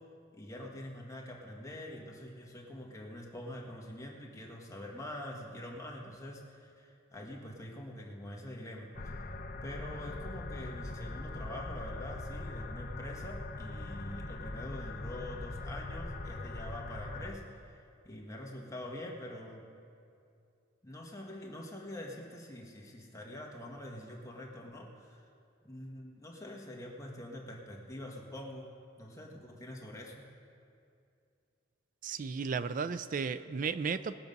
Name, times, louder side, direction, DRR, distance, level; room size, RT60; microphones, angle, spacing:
voice 1, 0.3-9.4 9.6-17.8 18.0-19.6 20.8-25.2 25.6-28.7 29.0-30.2, left 1 dB, 15° left, -1 dB, 1.4 m, -45 dB
sound 1, 8.9-17.3, left 2 dB, 45° left, 0.8 m, -41 dB
voice 2, 32.0-34.2, right 5 dB, 45° right, 13 dB, 0.4 m, -34 dB
20.0 x 7.1 x 5.3 m, 2.4 s
head